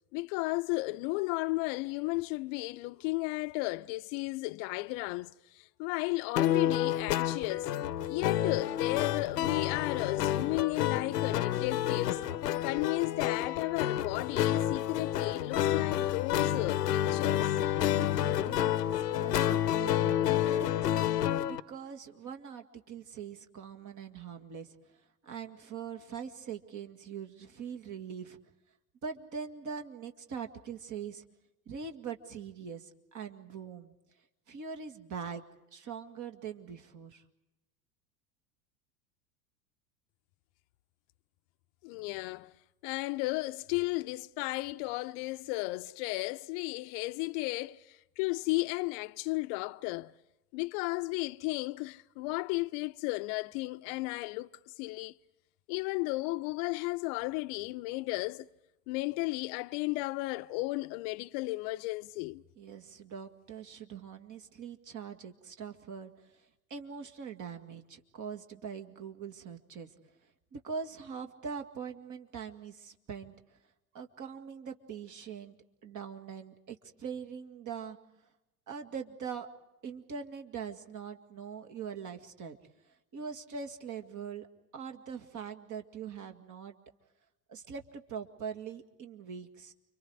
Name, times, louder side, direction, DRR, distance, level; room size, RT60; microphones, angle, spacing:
voice 1, 0.1-7.7 8.1-12.2 12.6-17.5 41.8-42.5 42.8-50.1 50.5-54.5 54.8-55.1 55.7-58.5 58.9-62.4, left 22 dB, 50° left, 0.8 m, -34 dB
sound 1, 6.4-21.6, left 11 dB, 85° left, 1.0 m, -29 dB
voice 2, 17.6-20.7 21.2-25.0 25.2-28.4 29.0-31.2 31.7-33.9 34.5-35.4 35.7-37.2 62.6-66.5 66.7-69.9 70.5-73.3 73.9-75.5 75.8-78.0 78.7-79.5 79.8-82.6 83.1-84.5 84.7-86.7 87.5-89.7, right 6 dB, 40° right, 2.2 m, -42 dB
30.0 x 24.5 x 4.8 m
hypercardioid pair, 85°, 47 cm